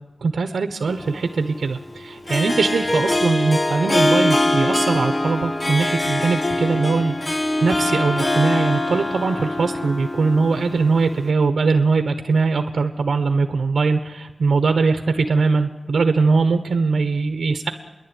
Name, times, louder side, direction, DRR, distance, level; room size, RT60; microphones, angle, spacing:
voice 1, 0.0-17.7, right 4 dB, 85° right, 6 dB, 1.2 m, -21 dB
Harp, 0.9-11.3, left 1 dB, 25° left, 1.2 m, -23 dB
29.5 x 11.0 x 9.2 m, 1.1 s
wide cardioid pair, 110°, 0 cm